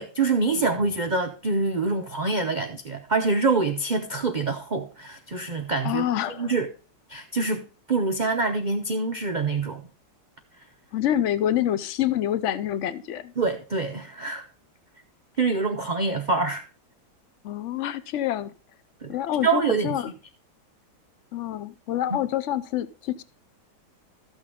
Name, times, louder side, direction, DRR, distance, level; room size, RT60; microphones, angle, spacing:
voice 1, 0.0-6.7 7.1-9.9 13.4-14.5 15.4-16.6 19.0-19.2 19.4-20.0 22.1-22.2, right 3 dB, 85° right, 0.4 m, -25 dB
voice 2, 5.8-6.5 10.9-13.3 17.4-18.5 19.1-20.1 21.3-23.2, left 11 dB, 70° left, 0.7 m, -27 dB
13.0 x 6.4 x 3.6 m
omnidirectional pair, 1.8 m